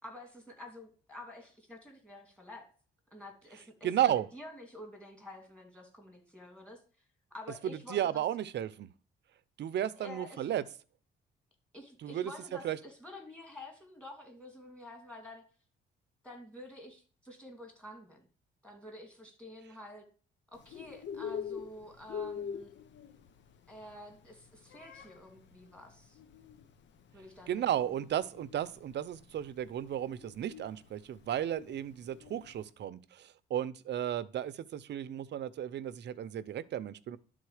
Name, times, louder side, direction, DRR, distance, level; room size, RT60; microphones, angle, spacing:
voice 1, 0.0-2.7 3.1-6.8 7.3-8.2 10.0-10.5 11.7-15.4 16.2-18.3 18.6-20.0 20.5-22.7 23.7-26.2 27.1-27.7, left 1 dB, 5° left, 2 dB, 2.8 m, -49 dB
voice 2, 3.8-4.2 7.6-8.9 9.6-10.6 12.0-12.3 12.6-12.8 27.5-37.2, right 11 dB, 60° right, 15 dB, 0.6 m, -34 dB
Bird, 20.5-32.7, left 7 dB, 65° left, 0.9 m, -45 dB
11.5 x 3.8 x 4.9 m, 0.40 s
cardioid pair, 90°, 20 cm